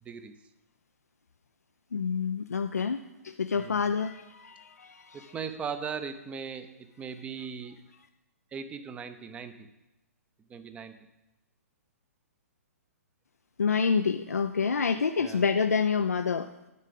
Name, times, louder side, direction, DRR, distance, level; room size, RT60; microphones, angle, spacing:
voice 1, 0.0-0.3 3.5-3.9 5.1-7.8 8.5-9.7 10.5-11.0 15.2-15.4, right 6 dB, 15° right, 10 dB, 0.7 m, -39 dB
voice 2, 1.9-5.3 13.6-16.5, left 5 dB, 80° left, 8 dB, 0.5 m, -28 dB
11.0 x 7.4 x 5.3 m, 0.95 s
figure-of-eight pair, 125°, 8 cm